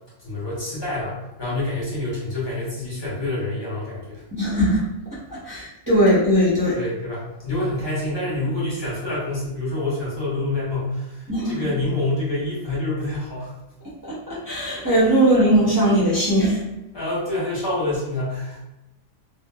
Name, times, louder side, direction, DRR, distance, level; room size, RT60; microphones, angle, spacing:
voice 1, 0.2-4.2 6.7-13.5 16.9-18.6, left 2 dB, 25° left, -8 dB, 0.8 m, -27 dB
voice 2, 4.3-4.8 5.3-6.7 11.3-11.7 14.0-16.6, right 1 dB, 25° right, -10 dB, 0.4 m, -19 dB
3.0 x 2.0 x 2.2 m, 0.94 s
omnidirectional pair, 1.4 m